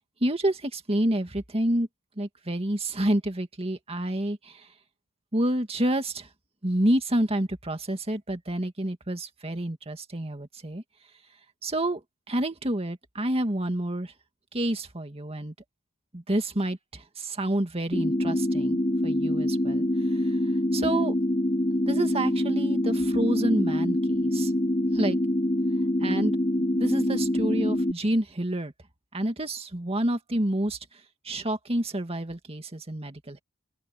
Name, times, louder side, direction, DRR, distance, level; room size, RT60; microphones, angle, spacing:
voice 1, 0.2-1.9 2.2-4.7 5.3-6.3 6.6-10.8 11.6-12.0 12.3-14.1 14.5-15.5 16.1-19.9 20.1-20.4 20.7-21.1 21.9-24.5 24.9-25.2 26.0-26.4 26.7-28.7 29.1-30.8 31.2-33.4, right 1 dB, 30° right, 2.1 m, -28 dB
sound 1, 17.9-27.9, left 1 dB, 25° left, 3.5 m, -25 dB
open air
head